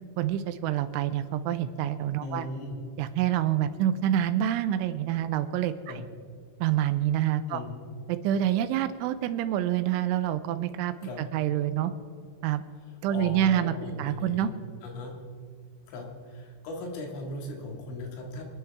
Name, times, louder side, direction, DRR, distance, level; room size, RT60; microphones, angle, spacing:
voice 1, 0.2-2.5 3.0-6.0 6.6-7.6 8.1-11.9 12.4-12.6 13.0-13.7 14.0-14.5, right 11 dB, 90° right, 10 dB, 3.1 m, -27 dB
voice 2, 2.2-2.8 5.9-6.0 7.5-7.7 11.0-11.2 13.1-14.5 14.8-15.1 15.9-18.5, left 1 dB, 75° left, 1 dB, 4.4 m, -38 dB
27.5 x 10.0 x 3.5 m, 2.1 s
omnidirectional pair, 5.5 m